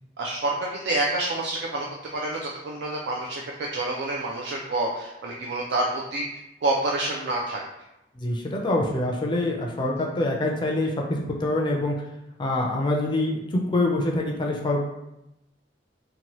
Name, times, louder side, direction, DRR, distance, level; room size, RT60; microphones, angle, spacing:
voice 1, 0.2-1.9 2.1-6.3 6.6-7.6, right 2 dB, 65° right, -2 dB, 0.4 m, -28 dB
voice 2, 8.2-11.9 12.4-14.8, left 1 dB, 25° left, 0 dB, 0.4 m, -25 dB
2.8 x 2.2 x 2.9 m, 0.89 s
head